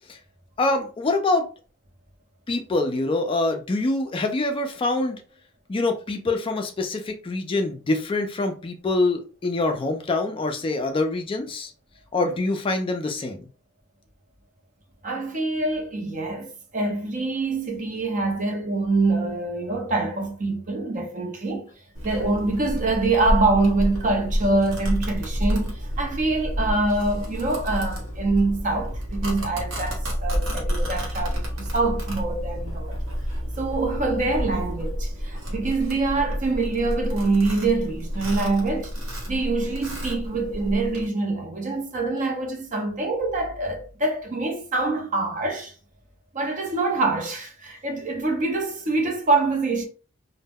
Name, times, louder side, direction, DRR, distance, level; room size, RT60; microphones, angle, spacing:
voice 1, 0.6-1.5 2.5-5.2 5.7-11.7 12.1-13.4, left 2 dB, 25° left, 0.3 m, -25 dB
voice 2, 15.0-21.7 22.0-33.0 33.6-38.9 39.3-45.7 46.3-49.9, right 3 dB, 40° right, 0.6 m, -25 dB
Domestic sounds home sounds, 21.9-41.0, equal, 80° right, 1.0 m, -29 dB
2.1 x 2.0 x 3.4 m
head